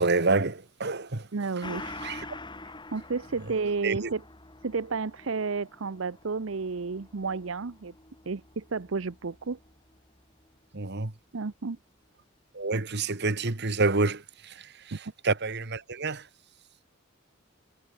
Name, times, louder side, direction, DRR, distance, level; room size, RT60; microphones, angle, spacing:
voice 1, 0.0-1.3 1.8-2.3 3.8-4.1 10.7-11.1 12.5-16.3, right 3 dB, 55° right, 1.8 m, -28 dB
voice 2, 1.3-2.0 2.6-4.2 4.6-7.9 8.3-9.6 11.3-11.8 14.9-15.0, right 4 dB, 70° right, 0.7 m, -32 dB
Gong, 1.6-10.6 10.9-11.0, left 2 dB, 25° left, 6.8 m, -46 dB
head